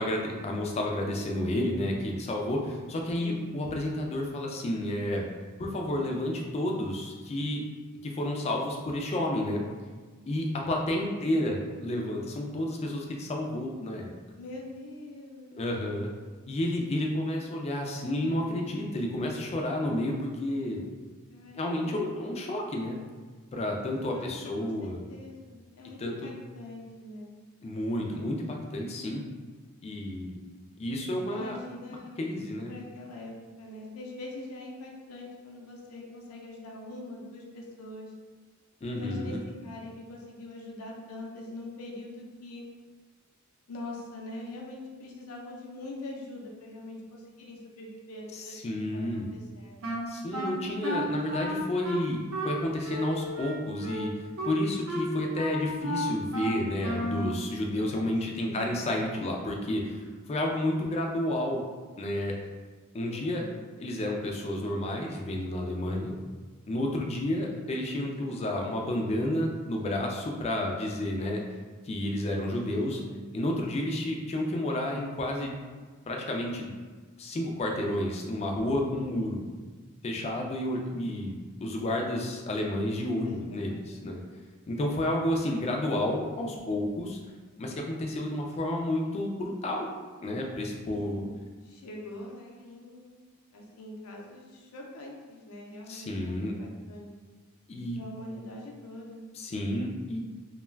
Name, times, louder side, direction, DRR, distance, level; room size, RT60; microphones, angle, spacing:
voice 1, 0.0-5.2 5.6-7.6 8.0-9.6 10.3-14.1 15.6-16.1 16.5-20.8 21.5-23.0 23.5-25.0 26.0-26.3 27.6-29.2 29.8-30.4 30.8-31.6 32.2-32.7 38.8-39.4 48.3-49.3 50.1-54.1 54.4-61.7 62.0-62.4 62.9-63.4 63.8-66.1 66.7-71.4 71.8-73.0 73.3-75.5 76.1-76.7 77.2-79.4 80.0-81.3 81.6-84.2 84.7-87.2 87.6-89.9 90.2-91.2 95.9-96.5 97.7-98.0 99.3-100.2, left 1 dB, 30° left, 0 dB, 0.3 m, -31 dB
voice 2, 3.2-3.5 11.2-11.4 14.3-15.6 21.3-22.3 24.1-24.3 24.6-27.3 31.3-32.2 32.7-38.1 38.9-42.6 43.7-50.0 58.3-58.8 63.1-63.6 72.8-73.2 83.1-84.2 90.9-91.4 91.6-93.1 93.5-97.1 98.0-99.3, left 2 dB, 85° left, -1 dB, 0.5 m, -43 dB
Wind instrument woodwind instrument, 49.8-57.4, equal, 65° right, 0.6 m, -33 dB
2.2 x 2.2 x 3.2 m, 1.4 s
head